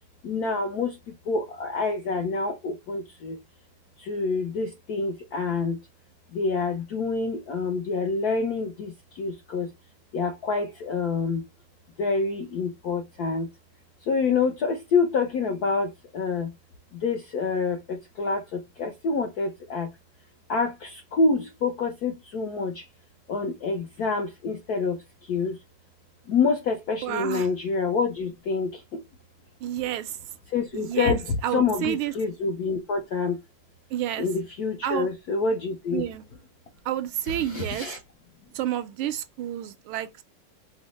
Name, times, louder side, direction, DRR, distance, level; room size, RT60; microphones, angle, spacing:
voice 1, 0.2-1.0 1.3-3.4 4.0-5.8 6.3-8.9 9.2-9.7 10.1-11.4 12.0-13.5 14.1-16.5 17.0-19.9 20.5-22.8 23.3-25.0 25.3-25.6 26.3-28.8 30.5-33.4 34.2-36.0 37.3-38.0, left 4 dB, 70° left, 0.9 m, -27 dB
voice 2, 27.0-27.5 29.6-30.2 30.7-32.1 33.9-34.3 34.8-35.1 35.9-36.2 36.8-38.0 38.5-40.2, right 12 dB, 80° right, 1.4 m, -30 dB
5.0 x 2.0 x 4.1 m
omnidirectional pair, 2.4 m